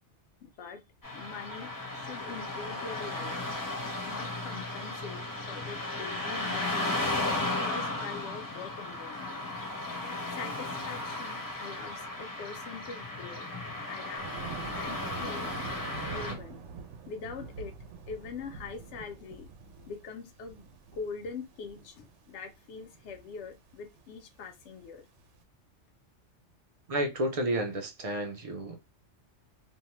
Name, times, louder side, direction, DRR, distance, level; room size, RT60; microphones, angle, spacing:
voice 1, 0.4-0.8 1.1-3.4 4.1-7.0 7.6-9.5 10.3-13.4 13.9-14.3 14.7-15.5 16.0-16.6 17.1-17.7 18.1-19.5 19.9-20.6 20.9-25.0, left 5 dB, 75° left, 0.9 m, -43 dB
Car passing by / Traffic noise roadway noise, 1.0-16.3, left 2 dB, 20° left, 0.6 m, -35 dB
Thunder, 14.2-25.3, right 6 dB, 80° right, 0.9 m, -46 dB
voice 2, 26.9-28.9, right 1 dB, 50° right, 0.4 m, -31 dB
2.6 x 2.1 x 2.9 m
omnidirectional pair, 1.2 m